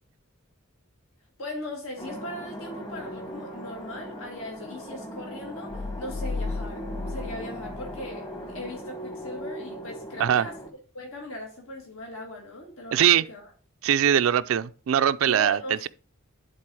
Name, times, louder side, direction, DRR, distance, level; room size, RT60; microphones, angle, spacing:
voice 1, 1.4-10.6 10.9-13.5 15.3-15.9, left 1 dB, 75° left, 1.9 m, -39 dB
sound 1, 2.0-10.7, equal, 25° left, 1.2 m, -39 dB
sound 2, 5.7-8.7, left 3 dB, 55° left, 0.4 m, -35 dB
voice 2, 12.9-13.2 13.8-15.9, right 9 dB, 70° right, 0.4 m, -22 dB
10.5 x 4.1 x 4.7 m
head